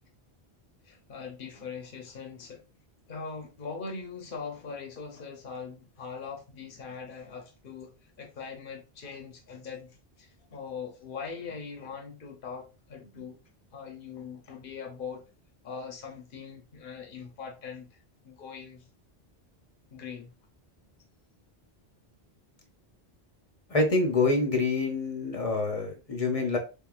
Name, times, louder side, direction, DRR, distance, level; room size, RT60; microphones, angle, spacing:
voice 1, 0.8-2.6 3.1-7.9 8.2-13.4 13.7-15.2 15.6-18.0 18.2-18.8 19.9-20.3, left 5 dB, 60° left, 1.1 m, -41 dB
voice 2, 23.7-26.6, left 3 dB, 35° left, 0.9 m, -26 dB
3.7 x 3.7 x 2.4 m
omnidirectional pair, 1.0 m